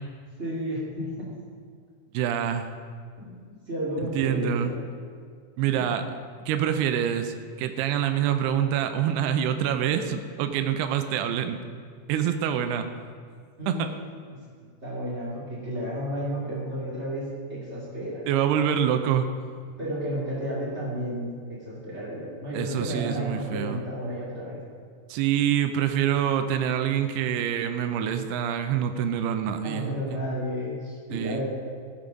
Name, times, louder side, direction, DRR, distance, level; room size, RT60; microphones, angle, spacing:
voice 1, 0.4-1.3 3.2-4.8 13.6-13.9 14.3-14.4 14.8-18.2 19.8-24.6 29.6-31.5, equal, 30° right, -6 dB, 1.2 m, -32 dB
voice 2, 2.1-2.7 4.1-4.7 5.6-6.1 6.5-11.6 12.1-12.9 13.7-13.9 18.3-19.3 22.5-23.8 25.1-30.2 31.1-31.4, right 9 dB, 90° right, 7 dB, 2.3 m, -26 dB
15.0 x 7.4 x 5.1 m, 2.1 s
omnidirectional pair, 5.4 m